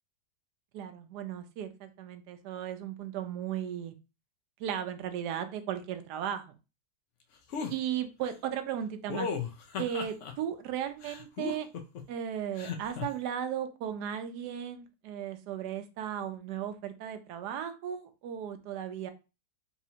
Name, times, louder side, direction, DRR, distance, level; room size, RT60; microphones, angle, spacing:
voice 1, 0.7-3.9 4.6-6.5 7.7-9.3 9.8-11.7 12.1-19.1, right 9 dB, 75° right, 8 dB, 1.1 m, -36 dB
sound 1, 7.5-7.7 9.1-10.3 11.0-12.0 12.6-13.1, left 6 dB, 65° left, 0.7 m, -35 dB
4.2 x 2.6 x 2.8 m, 0.29 s
omnidirectional pair, 1.9 m